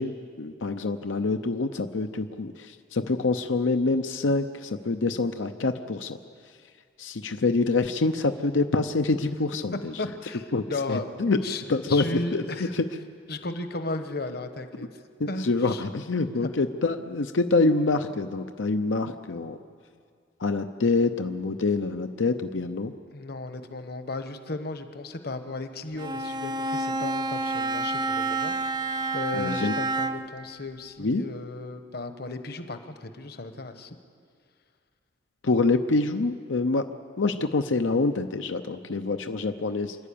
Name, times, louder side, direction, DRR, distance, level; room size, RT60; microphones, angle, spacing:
voice 1, 0.0-6.2 7.0-9.9 10.5-11.4 11.7-12.9 15.2-19.6 20.4-22.9 29.3-29.7 31.0-31.2 35.4-36.8 37.2-40.0, left 3 dB, 90° left, 7 dB, 0.7 m, -26 dB
voice 2, 10.0-11.1 11.4-11.6 11.9-12.7 13.3-15.0 15.3-15.8 16.3-16.5 23.1-28.6 29.1-34.0, left 2 dB, 55° left, 8 dB, 1.1 m, -35 dB
Bowed string instrument, 26.0-30.4, right 2 dB, 20° right, 0.6 m, -29 dB
27.5 x 11.0 x 8.6 m, 2.1 s
head